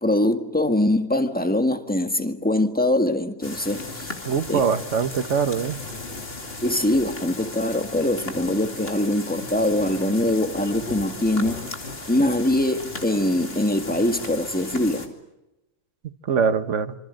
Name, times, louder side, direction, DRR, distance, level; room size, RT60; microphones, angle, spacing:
voice 1, 0.0-4.1 4.5-4.6 6.6-11.6 12.1-15.1, left 1 dB, 5° left, 1.7 m, -23 dB
sound 1, 3.4-15.1, left 2 dB, 50° left, 2.9 m, -36 dB
voice 2, 4.2-5.8 16.3-17.0, right 6 dB, 70° right, 1.5 m, -23 dB
26.5 x 26.0 x 7.6 m
omnidirectional pair, 1.3 m